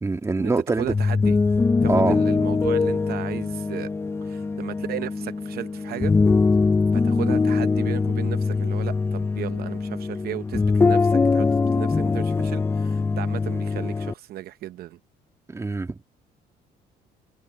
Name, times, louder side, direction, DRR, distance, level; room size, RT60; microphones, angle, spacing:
voice 1, 0.0-0.9 1.9-2.2 15.5-16.0, right 3 dB, 15° right, 2.1 m, -24 dB
sound 1, 0.8-14.1, left 4 dB, 15° left, 0.4 m, -22 dB
voice 2, 0.8-1.4 1.8-3.9 4.2-6.2 6.9-15.0, right 13 dB, 65° right, 0.8 m, -35 dB
cardioid pair, 110°, 17 cm